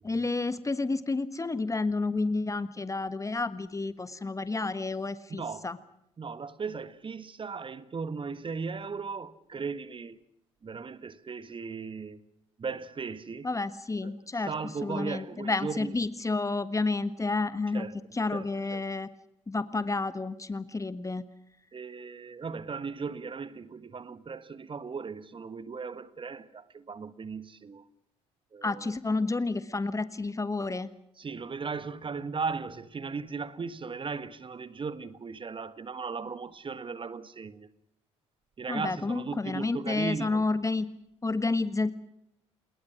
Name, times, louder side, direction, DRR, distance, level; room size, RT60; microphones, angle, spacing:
voice 1, 0.0-5.8 13.4-14.5 14.8-17.9 18.1-19.1 19.5-21.2 28.6-30.9 38.7-40.9 41.2-41.9, left 3 dB, 20° left, 1.5 m, -30 dB
voice 2, 5.3-5.7 6.2-10.2 10.6-12.2 12.6-13.5 14.0-14.1 14.5-15.9 17.7-17.9 18.3-18.4 18.7-18.8 21.7-27.8 28.5-28.9 31.2-37.7 38.6-40.4, right 5 dB, 30° right, 1.6 m, -37 dB
28.5 x 21.0 x 6.2 m
figure-of-eight pair, 45°, 16 cm